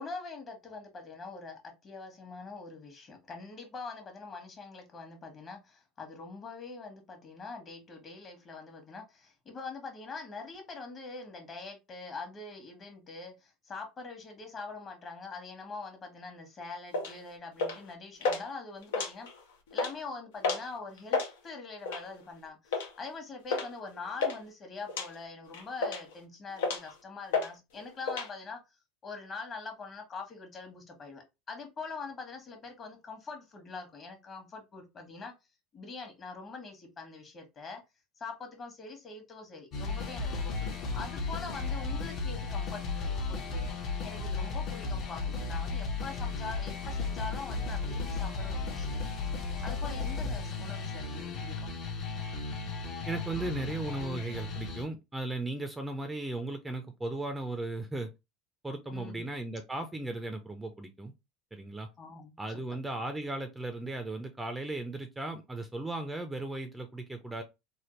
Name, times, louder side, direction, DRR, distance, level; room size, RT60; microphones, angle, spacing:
voice 1, 0.0-19.3 19.7-28.6 29.0-35.3 35.7-37.8 38.2-43.7 44.0-49.0 49.6-51.7 58.9-59.3 62.0-62.6, left 4 dB, 35° left, 1.2 m, -44 dB
sound 1, 16.9-17.1 17.6-17.9 18.2-18.4 18.8-19.4 19.7-19.9 20.4-20.7 21.0-21.3 21.9-22.1 22.7-22.9 23.5-23.7 23.9-24.4 24.9-25.1 25.5-26.1 26.6-26.9 27.3-27.5 27.8-28.3, left 4 dB, 85° left, 0.7 m, -31 dB
sound 2, 39.7-54.8, left 4 dB, 50° left, 0.9 m, -35 dB
voice 2, 53.1-58.1 58.6-61.1 61.5-61.9 62.4-67.4, right 2 dB, 10° right, 0.5 m, -36 dB
3.3 x 2.1 x 3.0 m
supercardioid pair, 100°, 0 cm